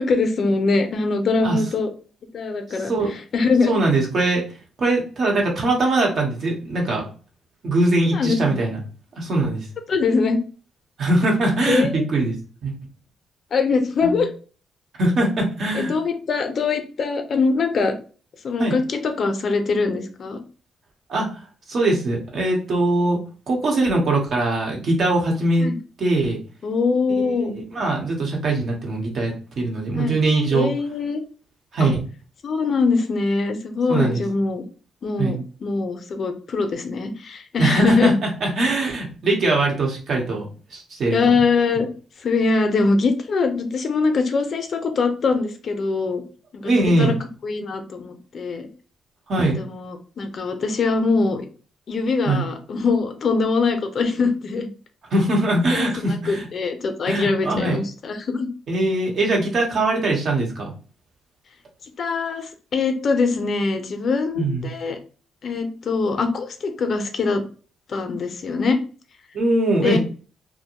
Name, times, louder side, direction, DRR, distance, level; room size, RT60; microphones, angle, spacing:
voice 1, 0.0-1.9 2.3-3.8 8.1-8.4 9.9-10.4 11.7-12.0 13.5-14.3 15.7-17.9 18.4-20.4 25.6-25.8 26.6-27.5 29.9-30.2 30.5-31.2 31.8-31.9 32.4-34.6 35.0-38.1 41.1-41.9 42.2-46.2 46.5-46.7 47.0-47.1 47.4-48.7 49.4-51.4 51.9-54.7 55.7-58.5 62.0-65.0 65.4-67.4 67.9-68.8 69.8-70.0, left 4 dB, 55° left, 6 dB, 0.5 m, -22 dB
voice 2, 2.8-3.1 3.7-4.4 4.8-7.0 7.6-8.8 9.2-9.7 11.0-12.3 12.6-12.7 14.0-14.2 15.0-15.9 18.6-18.7 21.1-21.4 21.7-23.2 23.5-25.7 26.0-26.4 27.2-30.7 31.7-32.0 33.9-34.2 35.2-35.4 37.6-41.3 46.6-47.2 49.3-49.6 52.2-52.4 55.1-56.5 57.1-57.8 58.7-60.7 64.3-64.7 69.3-70.0, right 2 dB, 60° right, 0 dB, 1.0 m, -21 dB
2.5 x 2.1 x 2.9 m, 0.38 s
cardioid pair, 80°, 0 cm